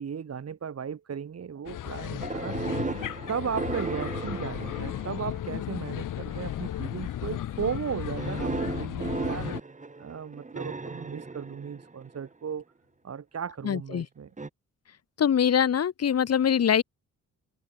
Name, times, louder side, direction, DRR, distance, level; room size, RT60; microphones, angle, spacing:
voice 1, 0.0-2.6 3.3-9.6 10.0-12.6 13.0-14.3, right 7 dB, 50° right, 4.5 m, -36 dB
sound 1, 1.7-9.6, left 11 dB, 70° left, 2.1 m, -35 dB
sound 2, 2.2-5.6 6.3-6.8 8.2-12.3 14.4-14.5, right 3 dB, 20° right, 4.2 m, -35 dB
voice 2, 13.6-14.0 15.2-16.8, left 8 dB, 50° left, 1.6 m, -23 dB
cardioid pair, 90°, 33 cm